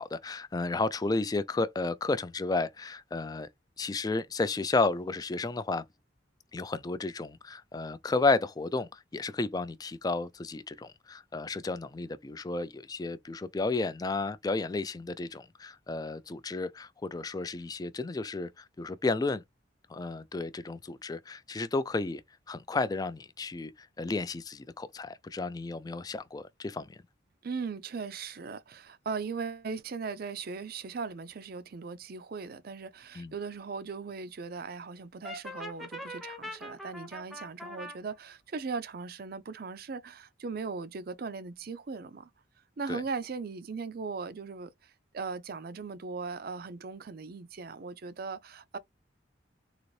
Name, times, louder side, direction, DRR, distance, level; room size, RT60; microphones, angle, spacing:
voice 1, 0.0-3.5 3.8-5.8 6.5-19.4 19.9-22.2 22.5-27.0 33.1-33.3 42.9-43.0, left 3 dB, 20° left, 0.3 m, -32 dB
voice 2, 27.4-42.3 42.8-48.8, right 4 dB, 50° right, 0.5 m, -38 dB
Brass instrument, 35.2-38.0, left 1 dB, ahead, 0.7 m, -42 dB
3.9 x 2.5 x 3.1 m
head